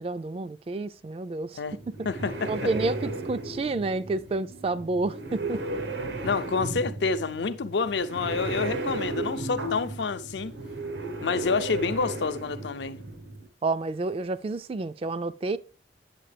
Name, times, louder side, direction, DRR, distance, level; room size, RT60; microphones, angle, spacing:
voice 1, 0.0-1.6 2.5-5.6 13.6-15.6, right 3 dB, 30° right, 0.3 m, -29 dB
sound 1, 1.7-13.5, right 2 dB, 80° right, 1.0 m, -35 dB
voice 2, 2.0-2.7 6.2-10.6 11.2-13.0, left 4 dB, 80° left, 0.6 m, -28 dB
8.8 x 7.3 x 3.3 m
head